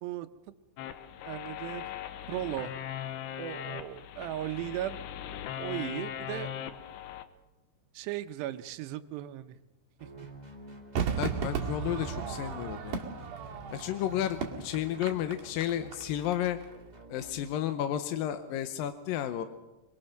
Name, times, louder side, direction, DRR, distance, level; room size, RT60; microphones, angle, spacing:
sound 1, 0.8-7.3, left 10 dB, 90° left, 3.2 m, -39 dB
voice 1, 1.3-1.9 2.3-2.7 3.4-6.5 7.9-9.6 10.0-10.1, right 13 dB, 85° right, 10 dB, 3.0 m, -37 dB
sound 2, 10.0-17.4, equal, 30° right, 0.8 m, -49 dB
Crowd / Fireworks, 11.0-16.3 16.6-16.7, right 7 dB, 55° right, 3.4 m, -35 dB
voice 2, 11.2-13.0 13.7-16.6 17.1-19.5, left 11 dB, 70° left, 9 dB, 2.3 m, -32 dB
24.5 x 22.5 x 6.6 m, 1.0 s
omnidirectional pair, 4.8 m